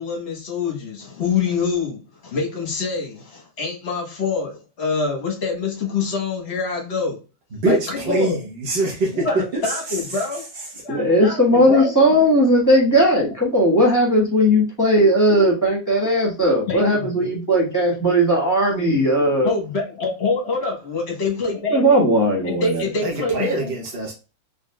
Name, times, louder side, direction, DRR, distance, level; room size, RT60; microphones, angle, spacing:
voice 1, 0.0-7.2 7.6-8.4 9.1-10.4 10.8-11.9 16.7-17.3 19.4-22.0 22.4-23.7, left 4 dB, 40° left, 1.1 m, -25 dB
voice 2, 7.6-8.3 8.6-9.1 23.0-24.1, right 2 dB, 40° right, 0.9 m, -23 dB
voice 3, 10.9-19.5 21.7-22.9, equal, 10° left, 1.3 m, -17 dB
3.9 x 3.3 x 2.2 m
omnidirectional pair, 2.1 m